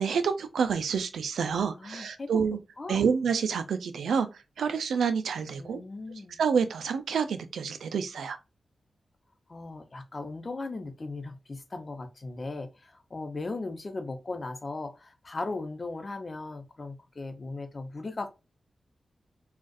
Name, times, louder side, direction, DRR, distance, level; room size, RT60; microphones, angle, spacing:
voice 1, 0.0-2.6 2.9-4.3 4.6-5.8 6.4-8.4, right 6 dB, 85° right, 0.4 m, -28 dB
voice 2, 1.8-2.4 2.8-3.1 5.6-6.4 9.5-18.3, left 3 dB, 45° left, 0.7 m, -37 dB
3.8 x 2.4 x 2.4 m
cardioid pair, 45°, 0 cm